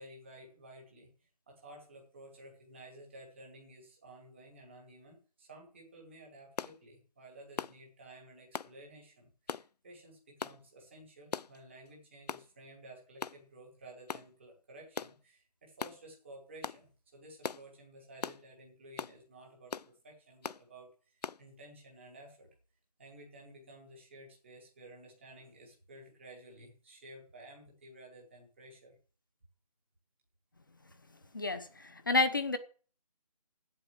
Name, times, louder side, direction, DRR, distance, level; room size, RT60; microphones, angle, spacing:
voice 1, 0.0-22.5 23.0-29.0, right 1 dB, ahead, -18 dB, 0.7 m, -54 dB
sound 1, 6.6-6.8 7.6-7.8 8.5-8.7 9.5-9.7 10.4-10.6 11.3-11.6 12.3-12.5 13.2-13.4 14.1-14.3 15.0-15.2 15.8-16.0 16.6-16.8 17.4-17.6 18.2-18.4 19.0-19.2 19.7-19.9 20.4-20.6 21.2-21.4, left 6 dB, 80° left, 0.5 m, -39 dB
voice 2, 31.3-32.6, left 3 dB, 30° left, 11 dB, 0.8 m, -30 dB
8.3 x 7.8 x 7.4 m, 0.40 s
figure-of-eight pair, 175°, 20 cm